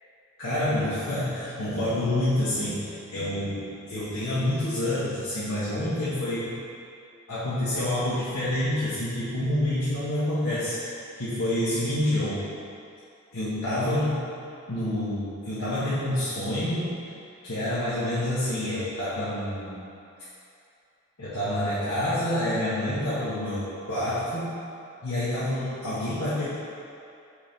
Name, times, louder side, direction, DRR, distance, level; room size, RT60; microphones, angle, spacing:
voice 1, 0.4-6.5 7.3-10.9 11.2-12.4 13.3-14.2 14.7-16.9 17.4-19.9 21.2-24.6 25.0-26.5, left 1 dB, 85° left, -13 dB, 1.7 m, -28 dB
6.8 x 4.9 x 5.3 m, 2.6 s
head